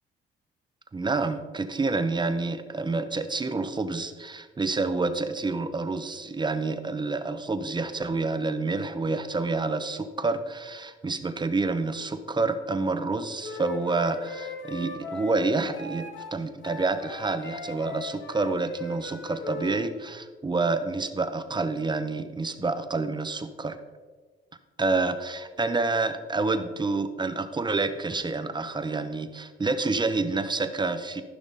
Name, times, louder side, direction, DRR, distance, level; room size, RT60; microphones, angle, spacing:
voice 1, 0.9-23.8 24.8-31.2, right 3 dB, 20° right, 9 dB, 0.9 m, -28 dB
Wind instrument woodwind instrument, 13.4-19.9, left 3 dB, 70° left, 1.7 m, -39 dB
14.5 x 5.9 x 4.1 m, 1.4 s
cardioid pair, 90°, 20 cm